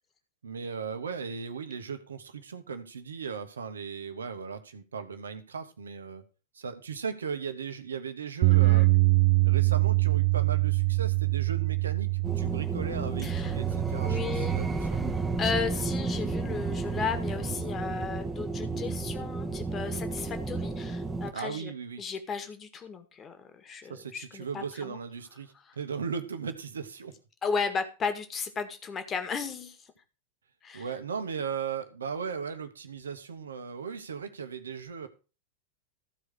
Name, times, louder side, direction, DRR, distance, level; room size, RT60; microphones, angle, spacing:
voice 1, 0.4-6.2 6.5-9.0 9.4-15.0 21.3-22.0 23.9-27.1 30.7-35.1, right 6 dB, 70° right, 9 dB, 1.3 m, -37 dB
Bass guitar, 8.4-14.7, right 25 dB, 45° right, 0.4 m, -24 dB
Walk in Dark Wind, 12.2-21.3, right 3 dB, 10° right, 1.2 m, -32 dB
voice 2, 13.2-13.6 14.0-14.6 15.4-21.7 22.0-25.0 25.7-25.8 27.4-29.8 30.6-30.9, left 5 dB, 25° left, 8 dB, 1.8 m, -34 dB
14.5 x 4.9 x 6.3 m, 0.33 s
figure-of-eight pair, 90°, 0 cm